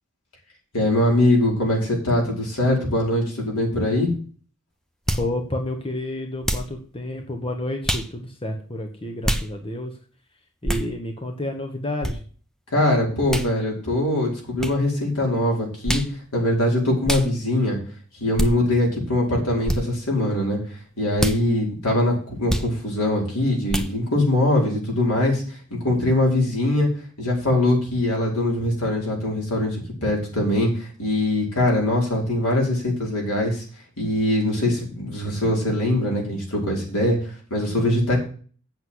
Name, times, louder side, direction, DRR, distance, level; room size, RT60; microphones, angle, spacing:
voice 1, 0.7-4.1 12.7-16.0 16.3-17.8 18.2-20.6 21.0-26.9 27.2-33.6 34.0-38.2, left 1 dB, 75° left, -1 dB, 5.2 m, -22 dB
voice 2, 5.1-10.0 10.6-12.2, left 1 dB, 25° left, 4 dB, 1.3 m, -30 dB
sound 1, 5.1-5.3 6.4-6.7 7.8-8.1 9.2-9.5 10.6-10.9 12.0-12.2 13.3-13.5 14.6-14.8 15.8-16.1 17.0-17.3 18.4-18.5 19.6-19.8 21.2-21.4 22.5-22.7 23.7-23.9, equal, ahead, 0.8 m, -24 dB
8.4 x 6.5 x 7.9 m, 0.41 s
head